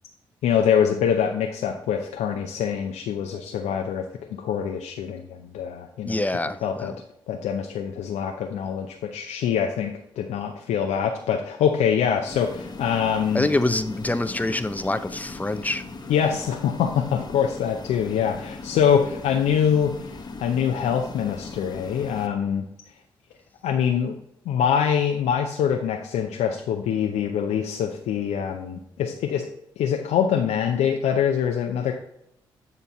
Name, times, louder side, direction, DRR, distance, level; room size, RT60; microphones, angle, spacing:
voice 1, 0.4-4.1 4.3-6.2 6.6-6.9 7.3-13.5 16.1-22.7 23.6-24.2 24.5-29.5 29.8-31.9, left 8 dB, 65° left, 0.6 m, -24 dB
voice 2, 6.0-6.9 13.3-15.8, left 2 dB, 15° left, 0.6 m, -25 dB
sound 1, 12.3-22.3, left 3 dB, 35° left, 1.1 m, -39 dB
9.3 x 4.0 x 4.2 m
hypercardioid pair, 40°, 12 cm